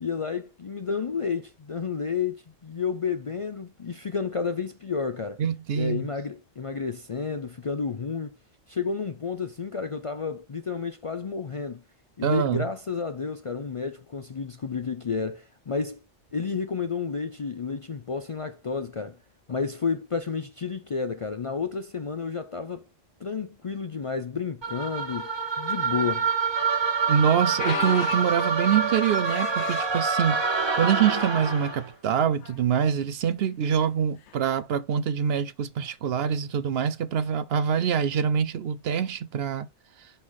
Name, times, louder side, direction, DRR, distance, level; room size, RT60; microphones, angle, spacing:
voice 1, 0.0-5.4 5.7-8.4 8.7-11.8 12.2-16.0 16.3-19.2 19.5-22.8 23.2-25.3 25.6-26.3, left 5 dB, 55° left, 0.3 m, -31 dB
voice 2, 5.4-6.0 12.2-12.6 27.1-30.4 30.7-39.7, right 8 dB, 65° right, 0.8 m, -25 dB
sound 1, 24.6-31.9, right 4 dB, 25° right, 0.8 m, -27 dB
sound 2, 27.6-30.1 30.8-31.1 31.4-31.5 32.4-32.7 34.3-34.4, left 9 dB, 75° left, 1.0 m, -36 dB
5.5 x 4.1 x 4.8 m
omnidirectional pair, 1.2 m